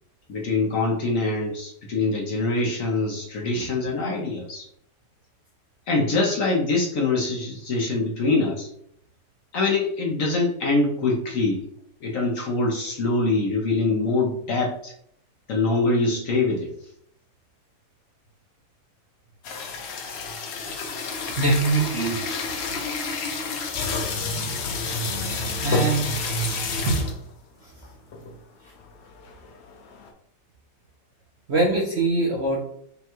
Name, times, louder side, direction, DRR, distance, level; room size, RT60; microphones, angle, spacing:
voice 1, 0.3-4.7 5.9-8.7 9.5-11.7 12.0-14.9 15.5-16.7, left 3 dB, 55° left, -1 dB, 1.1 m, -24 dB
sound 1, 19.4-27.3 27.8-27.9 28.1-28.4 28.8-30.1, left 3 dB, 80° left, 0.5 m, -29 dB
voice 2, 21.4-22.3 25.6-26.2 26.9-27.0 27.6-27.7 31.5-32.6, right 2 dB, 50° right, -3 dB, 0.9 m, -22 dB
5.4 x 2.4 x 2.9 m, 0.67 s
omnidirectional pair, 1.9 m